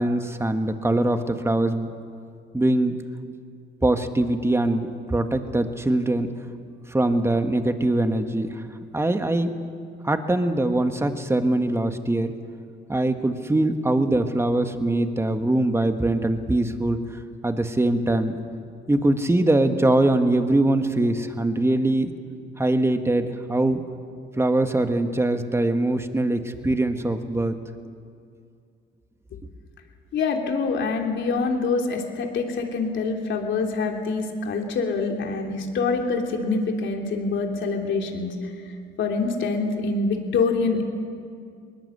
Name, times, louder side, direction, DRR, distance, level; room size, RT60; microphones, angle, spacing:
voice 1, 0.0-1.9 2.5-3.0 3.8-6.3 6.9-8.6 8.9-9.5 10.0-12.3 12.9-17.0 17.4-18.4 18.9-22.1 22.6-23.8 24.4-27.5, right 2 dB, 15° right, 7 dB, 1.7 m, -22 dB
voice 2, 30.1-40.8, left 4 dB, 70° left, 2 dB, 3.2 m, -25 dB
21.5 x 20.5 x 8.1 m, 2.3 s
cardioid pair, 90°, 20 cm